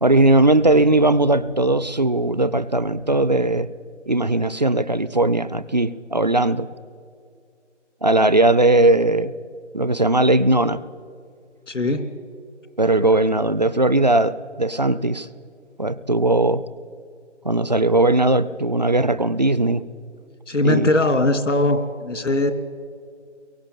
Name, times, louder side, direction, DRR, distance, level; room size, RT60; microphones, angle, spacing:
voice 1, 0.0-3.7 4.1-6.7 8.0-9.3 9.7-10.8 12.8-15.3 15.8-16.6 17.4-19.8 20.6-20.9, right 2 dB, 35° right, 17 dB, 0.6 m, -18 dB
voice 2, 11.7-12.1 20.5-22.5, left 2 dB, 85° left, 8 dB, 2.8 m, -20 dB
23.5 x 22.5 x 9.1 m, 2.3 s
figure-of-eight pair, 170°, 36 cm